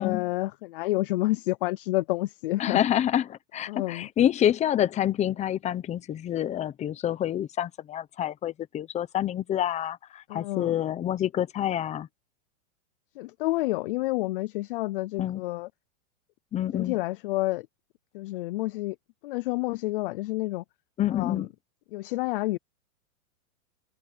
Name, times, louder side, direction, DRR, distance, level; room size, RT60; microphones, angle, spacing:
voice 1, 0.0-2.8 3.7-4.1 10.3-10.8 13.2-15.7 16.7-17.7 18.1-19.0 19.2-20.6 21.1-21.5 21.9-22.6, left 19 dB, 40° left, 0.4 m, -29 dB
voice 2, 2.6-12.1 15.2-15.4 16.5-17.0 21.0-21.5, left 11 dB, 15° left, 0.8 m, -27 dB
supercardioid pair, 155°, 43 cm